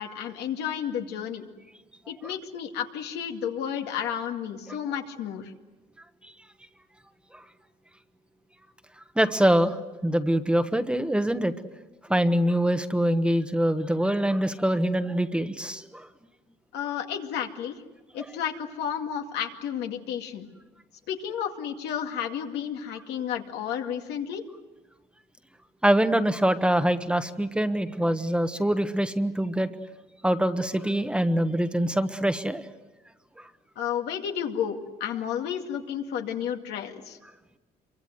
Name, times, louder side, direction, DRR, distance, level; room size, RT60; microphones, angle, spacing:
voice 1, 0.0-1.4 2.1-5.5 16.7-17.8 18.1-20.5 21.1-24.4 33.8-37.2, left 8 dB, 80° left, 3 dB, 2.3 m, -32 dB
voice 2, 9.1-9.8 10.0-11.5 12.1-16.1 18.2-18.3 25.8-29.7 30.2-32.7 33.4-33.5, right 1 dB, 5° right, 8 dB, 1.2 m, -24 dB
26.5 x 24.0 x 7.9 m, 1.1 s
cardioid pair, 110°, 17 cm